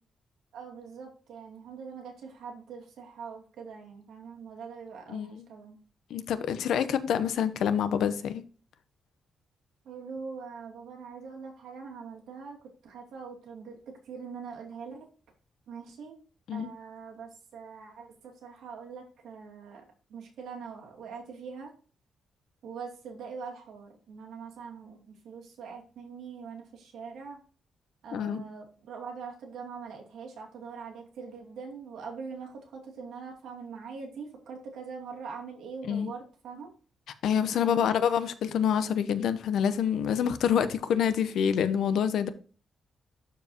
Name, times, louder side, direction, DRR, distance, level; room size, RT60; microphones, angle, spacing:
voice 1, 0.5-5.8 9.8-12.6 12.8-15.1 15.7-16.2 16.5-19.8 20.1-21.7 22.6-27.4 28.0-36.7 37.5-37.9, right 5 dB, 80° right, 2.5 m, -43 dB
voice 2, 5.1-5.4 6.1-8.4 16.5-16.7 28.1-28.4 35.9-36.1 37.2-42.3, left 8 dB, 75° left, 0.7 m, -27 dB
12.0 x 4.7 x 2.8 m
wide cardioid pair, 170°, 0 cm